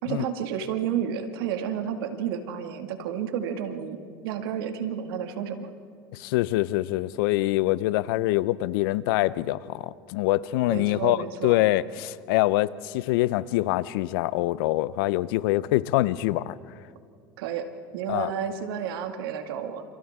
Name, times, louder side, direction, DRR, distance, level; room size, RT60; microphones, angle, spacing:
voice 1, 0.0-4.0 4.2-5.7 10.6-11.6 17.4-17.7 17.9-19.8, right 8 dB, 80° right, 2.2 m, -31 dB
voice 2, 6.1-16.6 18.1-18.3, left 17 dB, 75° left, 0.7 m, -25 dB
30.0 x 28.5 x 3.7 m
supercardioid pair, 110°, 12 cm